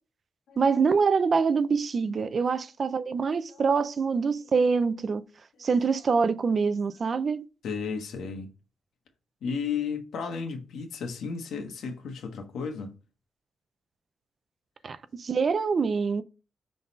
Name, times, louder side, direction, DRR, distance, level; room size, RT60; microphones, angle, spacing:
voice 1, 0.6-5.2 5.6-7.5 14.8-16.2, right 5 dB, 40° right, 0.5 m, -25 dB
voice 2, 7.6-8.5 9.4-13.0, left 5 dB, 90° left, 1.4 m, -33 dB
5.6 x 4.0 x 5.2 m
wide cardioid pair, 140°, 0 cm